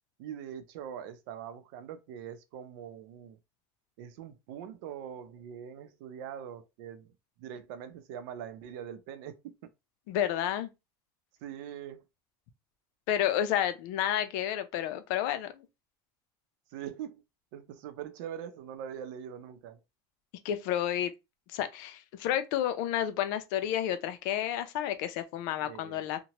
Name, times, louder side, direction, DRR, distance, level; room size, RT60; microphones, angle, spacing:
voice 1, 0.2-3.4 4.0-7.1 7.4-9.7 11.4-12.0 16.7-17.2 17.5-19.8 25.6-26.1, right 9 dB, 80° right, 0.6 m, -43 dB
voice 2, 10.1-10.7 13.1-15.7 20.4-21.1 21.5-26.2, left 11 dB, 75° left, 0.5 m, -30 dB
2.9 x 2.2 x 2.9 m
supercardioid pair, 135°, 11 cm